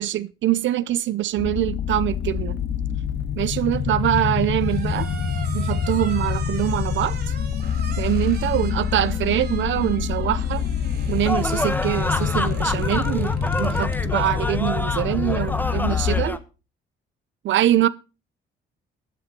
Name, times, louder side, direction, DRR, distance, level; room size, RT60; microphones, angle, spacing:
voice 1, 0.0-2.6 3.4-5.1 5.5-7.3 8.0-10.6 11.1-16.4 17.4-17.9, right 13 dB, 70° right, 0.6 m, -24 dB
sound 1, 1.4-16.3, left 7 dB, 55° left, 1.7 m, -26 dB
sound 2, 3.7-14.0, right 6 dB, 55° right, 3.1 m, -41 dB
sound 3, 11.3-16.4, left 1 dB, 10° left, 1.2 m, -28 dB
13.0 x 8.8 x 5.2 m
cardioid pair, 90°, 20 cm